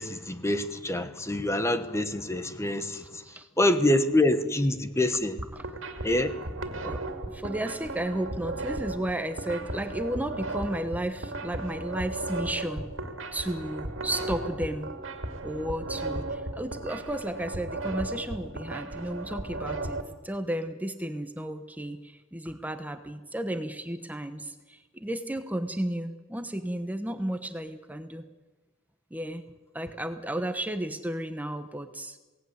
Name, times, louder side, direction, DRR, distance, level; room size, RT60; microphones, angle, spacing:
voice 1, 0.0-3.2 3.6-5.4 6.0-6.4, left 1 dB, 15° left, 10 dB, 1.2 m, -26 dB
voice 2, 2.9-3.5 5.6-5.7 6.8-14.9 15.4-28.2 29.1-29.4 29.7-32.2, right 1 dB, 10° right, 8 dB, 1.1 m, -33 dB
sound 1, 5.2-20.0, right 2 dB, 65° right, 2.4 m, -36 dB
22.5 x 17.5 x 9.7 m, 1.3 s
head